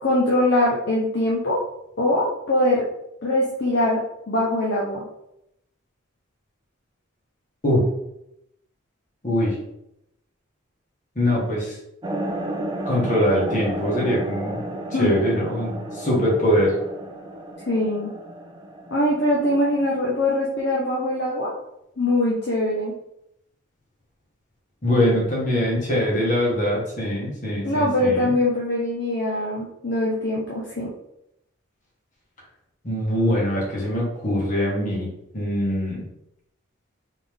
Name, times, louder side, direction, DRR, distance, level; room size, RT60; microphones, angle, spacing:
voice 1, 0.0-1.6 2.0-2.8 3.2-4.0 4.3-5.0 14.9-15.1 17.7-18.1 18.9-21.5 22.0-22.9 27.6-30.9, left 1 dB, 50° left, -4 dB, 0.8 m, -22 dB
voice 2, 9.2-9.6 11.2-11.8 12.9-14.6 15.0-16.7 24.8-28.3 32.8-36.1, equal, 35° left, -4 dB, 1.6 m, -22 dB
sound 1, 12.0-20.0, right 1 dB, 20° right, 0.5 m, -32 dB
4.1 x 3.7 x 3.5 m, 0.82 s
head